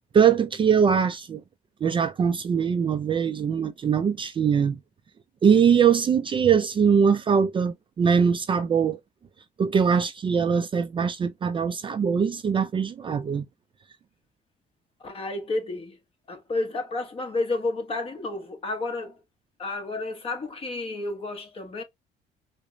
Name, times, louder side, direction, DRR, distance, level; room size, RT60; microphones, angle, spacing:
voice 1, 0.1-1.4 1.8-4.8 5.4-9.0 9.6-13.5, right 7 dB, 30° right, 0.4 m, -22 dB
voice 2, 15.0-16.0 16.3-19.2 19.6-21.8, left 2 dB, 35° left, 1.1 m, -31 dB
4.8 x 2.1 x 2.6 m
cardioid pair, 110°, 17 cm